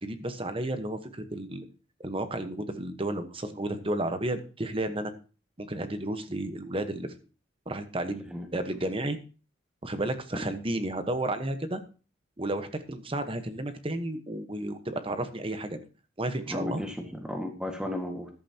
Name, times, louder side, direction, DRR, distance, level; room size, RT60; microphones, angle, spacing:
voice 1, 0.0-1.7 2.0-5.1 5.6-7.1 7.7-9.2 9.8-11.8 12.4-15.8 16.2-16.8, right 1 dB, 30° right, 9 dB, 1.1 m, -32 dB
voice 2, 16.5-18.3, left 1 dB, 5° right, 3 dB, 1.7 m, -35 dB
13.5 x 11.0 x 2.9 m, 0.36 s
head